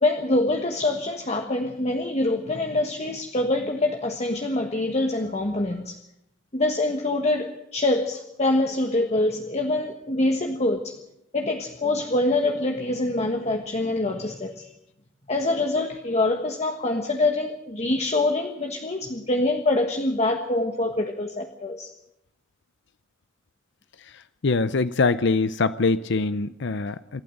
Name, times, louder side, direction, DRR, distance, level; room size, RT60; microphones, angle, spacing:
voice 1, 0.0-6.0 6.5-11.0 11.3-14.7 15.3-21.9, left 2 dB, 35° left, 4 dB, 1.5 m, -25 dB
voice 2, 24.4-27.2, left 3 dB, 65° left, 13 dB, 0.6 m, -23 dB
27.0 x 12.5 x 8.0 m, 0.83 s
head